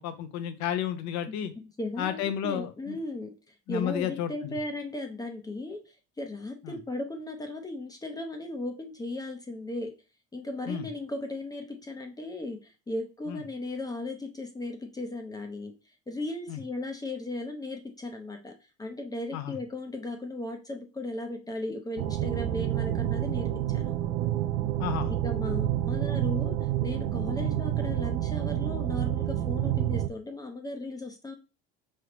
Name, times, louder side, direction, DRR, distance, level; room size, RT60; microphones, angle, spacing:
voice 1, 0.0-1.5 2.0-3.0 3.7-4.6 6.6-6.8 10.7-10.9 13.3-13.4 16.5-16.6 19.3-19.6 24.8-25.1 27.4-27.5, left 10 dB, 65° left, 10 dB, 0.8 m, -32 dB
voice 2, 1.3-3.3 3.7-9.9 10.3-15.7 16.1-18.5 18.8-23.9 25.1-31.3, left 2 dB, 10° left, 4 dB, 0.7 m, -36 dB
sound 1, 22.0-30.1, right 13 dB, 75° right, 0.5 m, -28 dB
4.7 x 3.3 x 3.0 m, 0.31 s
cardioid pair, 120°, 30 cm